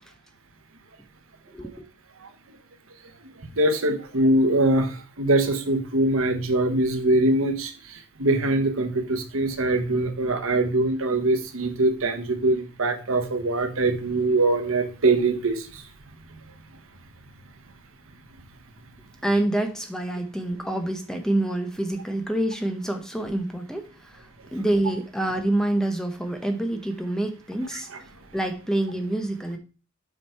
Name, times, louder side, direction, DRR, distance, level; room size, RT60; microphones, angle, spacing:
voice 1, 1.5-1.8 19.2-29.6, right 1 dB, 5° left, 0.7 m, -27 dB
voice 2, 3.6-15.8, right 2 dB, 75° right, 1.2 m, -23 dB
7.1 x 5.0 x 4.5 m
head